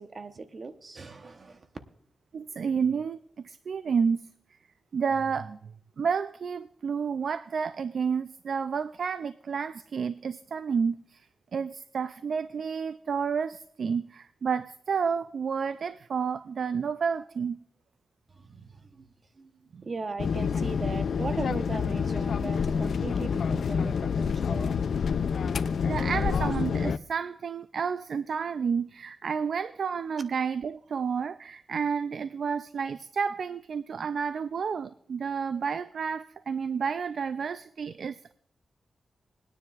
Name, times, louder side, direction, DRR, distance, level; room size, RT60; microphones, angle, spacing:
voice 1, 0.0-1.7 18.3-24.8, right 4 dB, 45° right, 0.9 m, -39 dB
voice 2, 2.3-3.2 3.4-4.3 4.9-11.3 11.5-17.6 19.7-19.8 25.9-38.3, right 6 dB, 70° right, 0.3 m, -30 dB
sound 1, 20.2-27.0, left 6 dB, 75° left, 0.3 m, -28 dB
21.0 x 9.8 x 2.4 m
cardioid pair, 85°, 0 cm